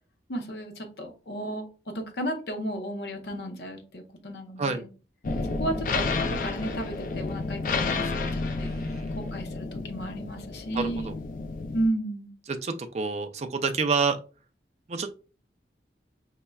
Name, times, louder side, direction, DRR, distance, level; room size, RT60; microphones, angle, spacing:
voice 1, 0.3-4.9 5.6-6.1 6.4-8.7 9.2-11.1 11.7-12.3, right 1 dB, 65° left, 4 dB, 0.7 m, -33 dB
sound 1, 5.2-11.9, left 3 dB, 50° left, 0.4 m, -31 dB
voice 2, 8.5-9.1 10.7-11.2 12.6-14.2 14.9-15.1, right 5 dB, 35° right, 7 dB, 0.4 m, -28 dB
5.2 x 2.1 x 2.3 m, 0.35 s
head